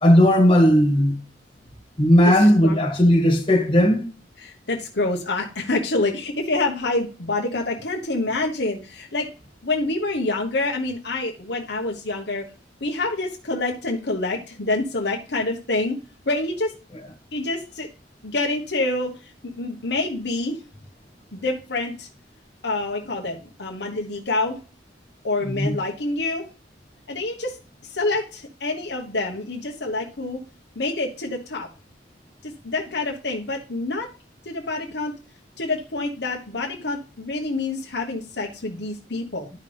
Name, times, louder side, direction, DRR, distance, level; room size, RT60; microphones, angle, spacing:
voice 1, 0.0-1.2 2.0-4.1 25.5-25.7, equal, 30° left, 2.1 m, -16 dB
voice 2, 2.2-2.8 4.4-9.3 9.6-12.5 12.8-16.0 16.3-16.7 17.3-17.9 18.2-20.6 21.3-22.1 22.6-24.6 25.2-26.4 27.1-27.6 27.8-30.4 30.7-31.7 32.4-34.1 34.4-35.1 35.6-39.5, left 2 dB, 65° left, 1.2 m, -27 dB
11.0 x 5.4 x 3.4 m
head